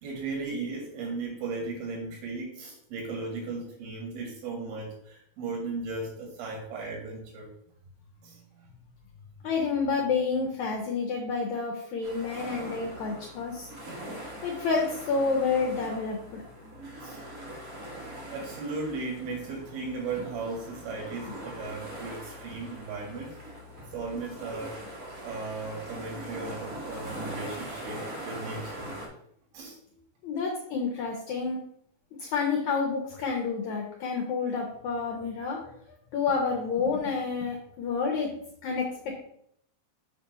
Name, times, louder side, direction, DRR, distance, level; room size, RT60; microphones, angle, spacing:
voice 1, 0.0-7.5 8.2-8.7 17.0-17.2 18.0-18.1 18.3-23.4 23.8-24.8 25.2-28.9 29.5-29.8, right 3 dB, 80° right, 0 dB, 3.0 m, -36 dB
voice 2, 9.4-13.7 14.4-16.4 30.2-31.6 32.2-35.7 36.1-38.3 38.6-39.2, left 4 dB, 70° left, 0 dB, 1.8 m, -29 dB
sound 1, 12.0-29.1, right 1 dB, 55° right, 0.9 m, -41 dB
6.7 x 3.4 x 5.5 m, 0.69 s
omnidirectional pair, 4.2 m